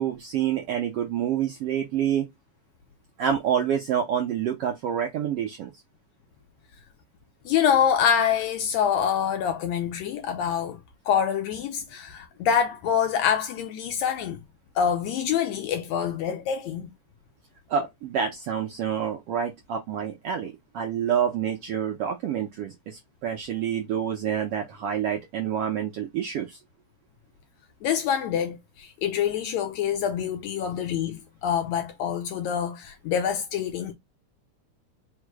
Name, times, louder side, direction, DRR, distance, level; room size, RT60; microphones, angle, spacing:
voice 1, 0.0-2.3 3.2-5.7 17.7-26.6, right 9 dB, 75° right, 1.4 m, -27 dB
voice 2, 7.4-10.8 11.1-14.4 14.7-16.9 27.8-33.9, left 8 dB, 75° left, 1.7 m, -26 dB
4.8 x 2.1 x 4.6 m
omnidirectional pair, 3.5 m